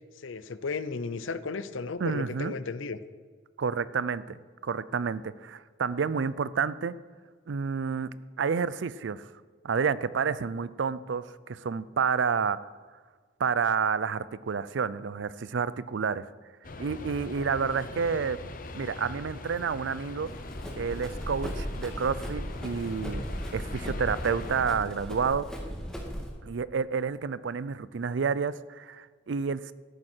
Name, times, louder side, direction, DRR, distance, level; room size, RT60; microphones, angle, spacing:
voice 1, 0.2-3.0, left 4 dB, 85° left, 14 dB, 0.6 m, -34 dB
voice 2, 2.0-2.5 3.6-7.0 7.5-8.1 8.4-9.3 9.6-12.6 13.4-16.2 16.8-18.4 18.7-20.3 20.8-23.2 23.5-25.5 26.4-29.7, right 6 dB, 70° right, 17 dB, 0.4 m, -29 dB
sound 1, 16.6-24.6, left 2 dB, 45° left, 0.8 m, -42 dB
Run, 20.3-26.3, equal, 5° left, 1.9 m, -37 dB
13.5 x 11.0 x 4.5 m, 1.5 s
head